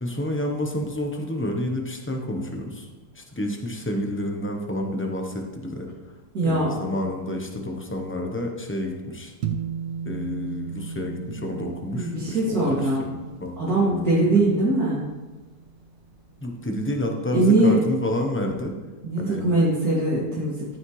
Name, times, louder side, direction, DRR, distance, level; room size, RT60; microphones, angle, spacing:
voice 1, 0.0-2.9 3.1-5.9 6.4-9.3 10.0-14.0 16.4-18.7 19.2-19.4, left 1 dB, 15° left, 2 dB, 0.5 m, -29 dB
voice 2, 6.3-6.7 11.9-13.1 13.6-15.0 17.3-17.8 19.0-20.7, right 2 dB, 55° right, -11 dB, 2.9 m, -21 dB
sound 1, 9.4-16.0, right 6 dB, 85° right, 1.5 m, -36 dB
14.0 x 6.4 x 3.2 m, 1.2 s
omnidirectional pair, 1.9 m